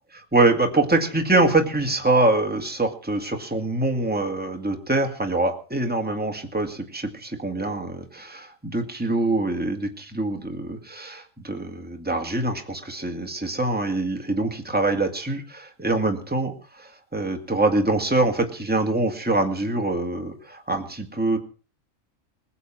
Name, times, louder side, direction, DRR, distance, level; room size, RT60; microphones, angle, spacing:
voice 1, 0.3-16.5 17.1-21.4, right 2 dB, 5° right, 4 dB, 2.2 m, -24 dB
21.5 x 7.3 x 7.4 m, 0.38 s
omnidirectional pair, 1.4 m